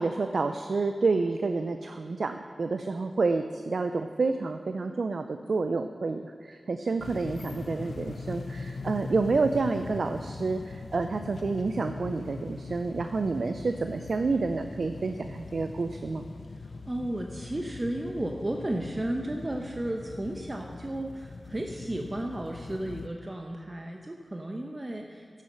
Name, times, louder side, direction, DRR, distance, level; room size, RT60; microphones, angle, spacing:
voice 1, 0.0-16.2, right 3 dB, 75° right, 7 dB, 0.4 m, -29 dB
sound 1, 7.0-23.1, left 3 dB, 80° left, 0.5 m, -41 dB
voice 2, 16.6-25.4, right 1 dB, 35° right, 2 dB, 0.9 m, -34 dB
11.0 x 7.4 x 6.6 m, 2.4 s
cardioid pair, 40°, 0 cm